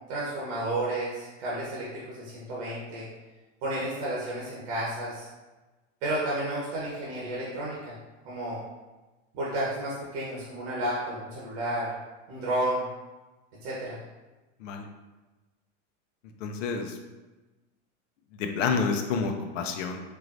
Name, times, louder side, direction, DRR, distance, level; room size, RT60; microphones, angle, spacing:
voice 1, 0.1-3.1 3.6-5.3 6.0-7.9 8.2-8.6 9.3-11.9 12.3-12.8 13.6-14.0, right 1 dB, 50° right, -6 dB, 1.1 m, -31 dB
voice 2, 16.4-17.0 18.3-20.0, left 5 dB, 80° left, 4 dB, 0.7 m, -29 dB
4.5 x 3.3 x 2.6 m, 1.2 s
supercardioid pair, 145°, 37 cm